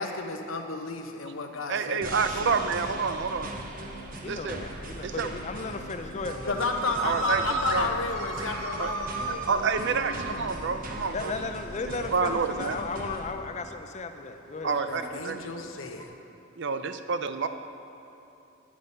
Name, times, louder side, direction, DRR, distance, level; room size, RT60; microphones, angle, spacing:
voice 1, 0.0-2.6 6.5-10.9 14.6-16.1, left 4 dB, 85° left, 5 dB, 1.0 m, -33 dB
voice 2, 1.7-3.5 4.3-4.6 5.0-5.3 7.0-7.9 8.8-8.9 9.4-11.3 12.1-12.8 14.6-15.5 16.6-17.5, right 5 dB, 60° right, 9 dB, 0.6 m, -28 dB
sound 1, 2.0-13.3, right 1 dB, 45° right, 1.0 m, -39 dB
voice 3, 4.2-6.6 11.1-14.7, left 3 dB, 35° left, 8 dB, 0.6 m, -35 dB
sound 2, 6.4-11.2 11.5-11.9 12.2-13.1 13.7-16.0, right 3 dB, 85° right, 1.2 m, -35 dB
9.8 x 9.6 x 5.4 m, 3.0 s
head